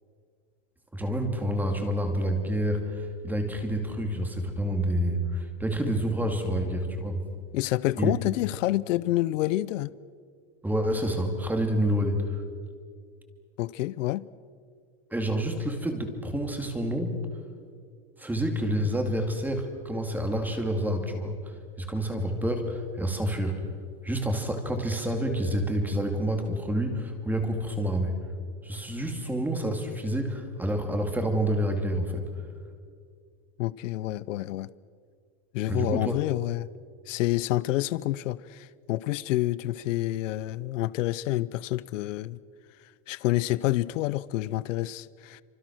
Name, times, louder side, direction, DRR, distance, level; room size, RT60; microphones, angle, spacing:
voice 1, 0.9-7.2 8.0-8.1 10.6-12.4 15.1-17.2 18.2-23.6 24.0-28.2 28.6-32.3 35.7-36.1, equal, 5° right, 2.4 m, -28 dB
voice 2, 7.5-9.9 13.6-14.2 33.6-34.7 35.5-36.7 37.1-42.4 43.1-45.4, left 16 dB, 85° left, 0.8 m, -28 dB
28.0 x 25.5 x 6.3 m
supercardioid pair, 170°, 37 cm